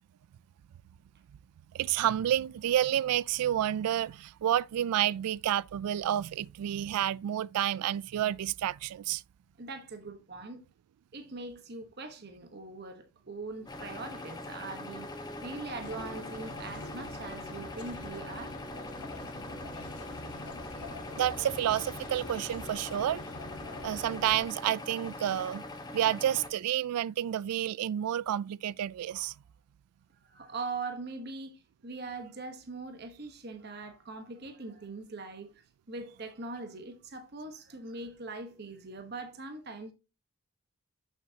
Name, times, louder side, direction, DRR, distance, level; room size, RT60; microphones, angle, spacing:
voice 1, 1.7-9.2 21.1-23.2 23.8-25.6 25.9-29.3, right 11 dB, 85° right, 0.3 m, -30 dB
voice 2, 9.6-10.6 11.1-18.6 30.2-35.5 35.9-39.9, right 3 dB, 45° right, 1.1 m, -41 dB
sound 1, 13.4-26.1, left 2 dB, ahead, 0.7 m, -51 dB
sound 2, 13.7-26.5, left 2 dB, 20° left, 1.1 m, -43 dB
sound 3, 15.8-24.5, left 2 dB, 90° left, 1.8 m, -46 dB
8.2 x 7.4 x 2.8 m
head